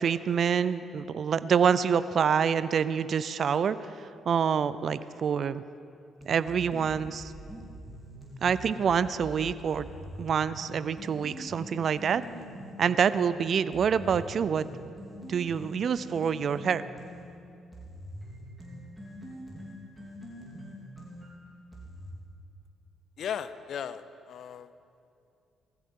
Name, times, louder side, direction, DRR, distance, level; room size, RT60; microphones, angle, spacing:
voice 1, 0.0-5.6 6.3-7.3 8.4-9.9 10.2-12.2 12.8-14.7 15.3-16.8, right 7 dB, 55° right, 14 dB, 0.5 m, -26 dB
sound 1, 6.2-13.3 13.7-17.3 17.7-22.1, equal, 5° right, 3.7 m, -44 dB
voice 2, 23.2-24.7, left 8 dB, 65° left, 13 dB, 0.6 m, -36 dB
19.5 x 15.0 x 3.8 m, 2.5 s
cardioid pair, 90°, 0 cm